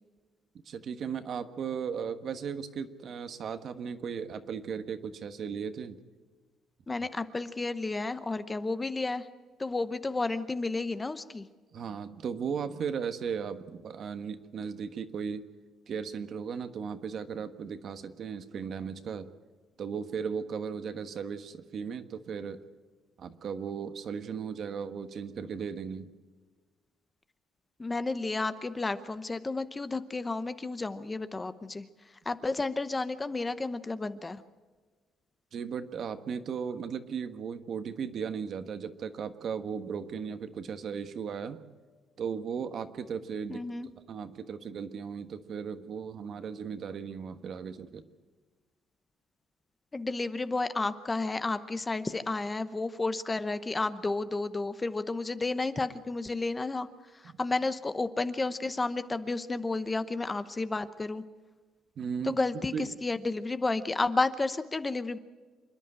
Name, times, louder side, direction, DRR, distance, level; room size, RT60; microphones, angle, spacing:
voice 1, 0.6-6.0 11.7-15.4 15.9-19.3 19.8-22.6 23.2-26.1 35.5-41.6 42.2-43.6 44.1-48.0 57.2-57.3 62.0-62.4 62.7-62.9, right 6 dB, 50° right, 10 dB, 1.3 m, -36 dB
voice 2, 6.9-9.3 9.6-11.5 27.8-31.9 32.3-34.4 43.5-43.9 49.9-56.9 57.2-61.2 62.2-65.2, left 3 dB, 20° left, 12 dB, 0.8 m, -31 dB
27.0 x 10.5 x 8.9 m, 1.4 s
cardioid pair, 125°, 0 cm